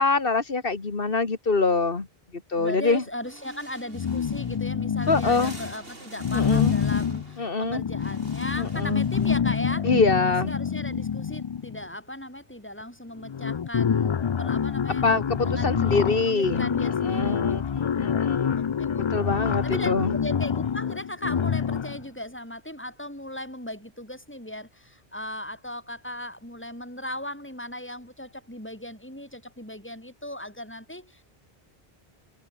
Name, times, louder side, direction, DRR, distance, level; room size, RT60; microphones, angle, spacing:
voice 1, 0.0-2.1 2.5-3.0 5.1-5.5 6.3-6.7 7.4-7.8 8.6-9.0 9.8-10.5 15.0-18.6 19.0-20.1, left 3 dB, 65° left, 2.3 m, -25 dB
voice 2, 2.6-9.9 10.3-15.1 15.4-17.6 18.5-19.0 19.6-31.2, left 1 dB, 10° left, 7.1 m, -37 dB
sound 1, 2.9-9.4, right 2 dB, 65° right, 5.5 m, -46 dB
sound 2, 3.9-5.7 6.2-11.9 12.8-12.9 13.2-22.1, left 7 dB, 45° left, 0.3 m, -26 dB
omnidirectional pair, 1.0 m